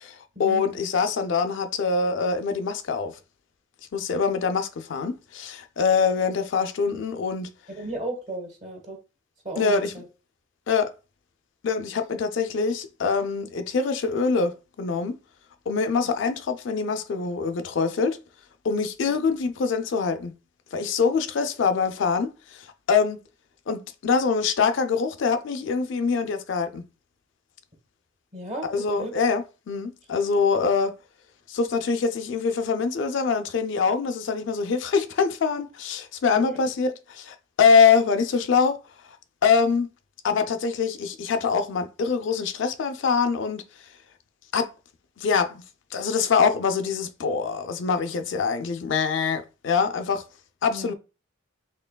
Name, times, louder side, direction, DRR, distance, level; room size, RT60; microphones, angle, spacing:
voice 1, 0.0-3.1 3.9-7.5 9.6-9.9 10.7-10.9 11.6-14.5 14.8-15.2 15.7-18.2 18.6-20.3 20.7-23.2 23.7-26.8 28.6-30.9 31.5-38.8 39.4-39.9 40.2-43.6 44.5-44.7 45.2-45.6 45.9-50.2 50.6-50.9, left 5 dB, 65° left, 0.4 m, -24 dB
voice 2, 7.8-9.0 9.4-10.0 28.3-29.1 36.3-36.6 50.7-50.9, right 1 dB, 40° right, 1.2 m, -35 dB
4.4 x 3.0 x 2.2 m
head